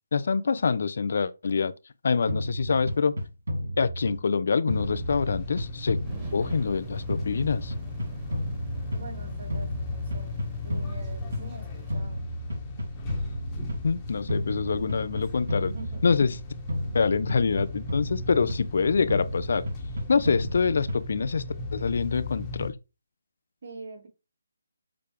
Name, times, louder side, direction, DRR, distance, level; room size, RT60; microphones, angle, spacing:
voice 1, 0.1-1.7 2.0-3.1 3.8-6.0 6.3-7.7 13.8-15.7 16.0-16.4 16.9-19.6 20.1-21.4 21.7-22.7, left 5 dB, 55° left, 0.4 m, -25 dB
sound 1, 2.3-4.4 4.7-6.8 7.1-9.2 9.5-11.6 11.9-13.9 14.3-16.4 16.7-18.8 19.1-21.2, equal, 75° right, 2.8 m, -32 dB
sound 2, 4.7-22.7, left 3 dB, 15° left, 1.1 m, -37 dB
sound 3, 6.0-11.9, right 1 dB, 15° right, 1.5 m, -45 dB
voice 2, 8.9-10.4 10.6-12.2 15.7-16.0 23.6-24.1, right 3 dB, 50° right, 2.1 m, -44 dB
6.6 x 2.4 x 3.4 m
figure-of-eight pair, 160°, 0 cm